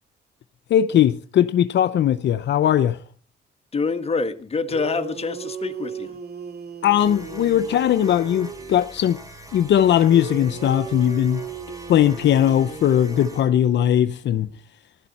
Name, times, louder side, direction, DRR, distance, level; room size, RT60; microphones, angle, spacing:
voice 1, 0.7-3.0 6.8-9.2 9.5-11.4 11.9-14.5, left 10 dB, 65° left, 0.7 m, -19 dB
voice 2, 3.7-6.1, left 4 dB, 30° left, 1.6 m, -26 dB
sound 1, 4.7-8.8 10.1-14.1, right 6 dB, 55° right, 2.3 m, -36 dB
sound 2, 7.0-13.5, right 1 dB, 15° right, 4.8 m, -43 dB
16.0 x 12.0 x 4.2 m
cardioid pair, 90°, 20 cm